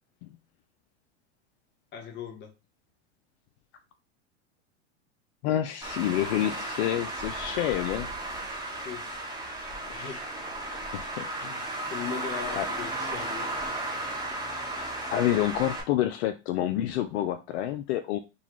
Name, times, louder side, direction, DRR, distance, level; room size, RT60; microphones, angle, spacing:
voice 1, 1.9-2.5 8.7-9.1 9.9-10.2 11.9-13.5, left 7 dB, 30° left, 4 dB, 0.9 m, -38 dB
voice 2, 5.4-8.1 8.4-8.5 9.9-10.2 10.9-11.5 12.6-12.7 15.1-18.2, left 12 dB, 65° left, 8 dB, 0.5 m, -28 dB
Traffic noise roadway noise, 5.8-15.8, right 2 dB, 10° right, 1.0 m, -34 dB
3.8 x 2.3 x 3.0 m, 0.27 s
hypercardioid pair, 115°, 36 cm